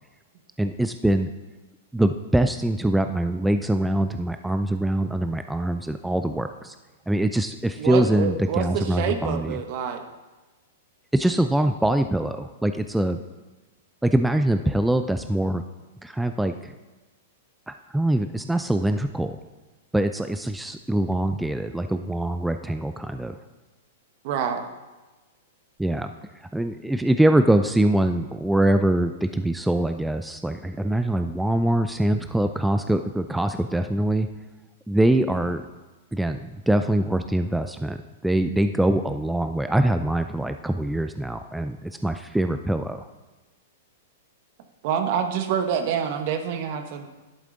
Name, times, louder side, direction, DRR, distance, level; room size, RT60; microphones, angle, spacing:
voice 1, 0.6-1.3 1.9-6.7 7.1-9.6 11.1-13.2 14.0-15.6 16.0-16.7 17.7-19.4 19.9-23.4 25.8-34.3 34.9-35.6 36.1-43.1, right 1 dB, 5° right, 8 dB, 0.3 m, -23 dB
voice 2, 7.8-10.0 24.2-24.7 44.8-47.1, right 7 dB, 50° right, 7 dB, 1.1 m, -27 dB
11.0 x 8.2 x 3.8 m, 1.2 s
hypercardioid pair, 130°, 0 cm